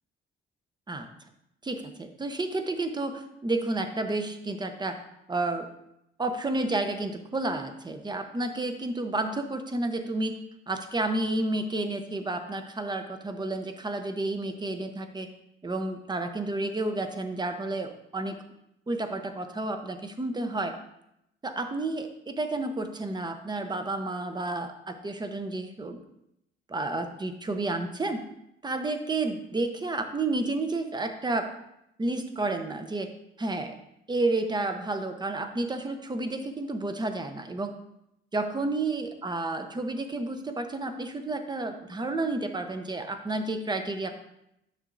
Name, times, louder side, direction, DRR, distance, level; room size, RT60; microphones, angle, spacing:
voice 1, 1.6-5.0 5.3-5.7 6.2-10.4 10.7-15.3 15.6-18.4 18.9-20.8 21.4-26.0 26.7-28.2 28.6-31.5 32.0-33.1 33.4-33.7 34.1-37.7 38.3-44.1, right 2 dB, 20° right, 7 dB, 0.9 m, -31 dB
10.0 x 6.1 x 2.6 m, 0.82 s
cardioid pair, 90°, 20 cm